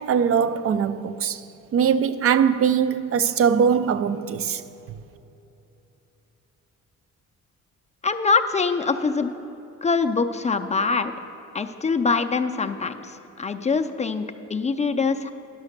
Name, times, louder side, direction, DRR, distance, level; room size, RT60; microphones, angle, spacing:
voice 1, 0.0-1.4 1.7-4.6, right 7 dB, 50° right, 0.4 m, -21 dB
voice 2, 8.0-9.3 9.8-11.1 11.5-15.3, left 4 dB, 25° left, 0.4 m, -24 dB
10.5 x 5.6 x 6.6 m
cardioid pair, 90°, 30 cm